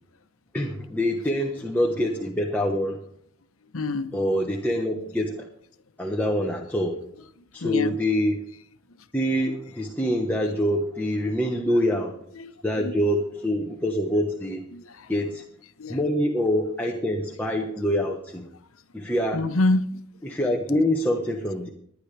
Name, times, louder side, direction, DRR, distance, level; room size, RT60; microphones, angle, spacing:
voice 1, 0.5-3.0 4.1-5.5 6.0-7.0 7.5-8.4 9.1-12.1 12.6-14.6 15.1-15.4 15.9-18.5 18.9-19.4 20.2-21.7, equal, 10° left, 1.1 m, -25 dB
voice 2, 3.7-4.1 7.6-7.9 12.4-12.5 12.8-12.9 14.7-15.1 15.8-16.0 19.3-20.0, left 2 dB, 85° left, 0.9 m, -26 dB
20.5 x 10.5 x 3.4 m
head